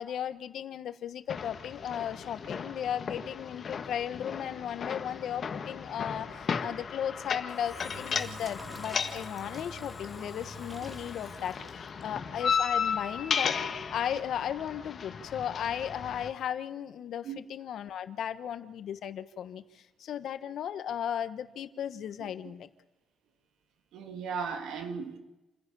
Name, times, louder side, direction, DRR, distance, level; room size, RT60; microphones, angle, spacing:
voice 1, 0.0-13.5 13.9-22.7, left 9 dB, 70° left, 11 dB, 1.3 m, -36 dB
sound 1, 1.3-16.3, left 6 dB, 50° left, 1.7 m, -35 dB
Engine / Drill, 7.5-12.0, right 4 dB, 20° right, 2.5 m, -48 dB
voice 2, 23.9-25.2, right 5 dB, 80° right, 5 dB, 2.8 m, -36 dB
28.5 x 11.0 x 8.6 m, 1.0 s
cardioid pair, 90°, 0 cm